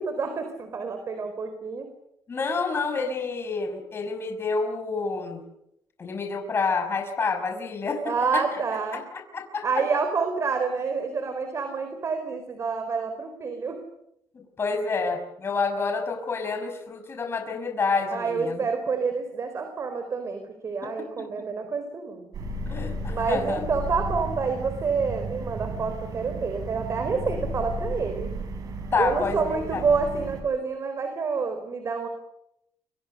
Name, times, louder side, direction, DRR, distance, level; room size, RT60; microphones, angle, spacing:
voice 1, 0.0-1.9 8.0-9.0 9.6-13.8 14.7-15.1 18.1-22.3 23.1-28.3 29.0-32.1, right 5 dB, 45° right, 8 dB, 4.3 m, -28 dB
voice 2, 2.3-5.4 6.0-8.4 8.9-9.0 9.3-9.7 14.3-18.6 20.8-21.3 22.7-23.6 28.9-29.8, left 4 dB, 35° left, 5 dB, 5.7 m, -28 dB
sound 1, 22.3-30.4, right 1 dB, 60° right, 7.8 m, -34 dB
29.5 x 25.5 x 6.7 m, 0.81 s
cardioid pair, 110°, 7 cm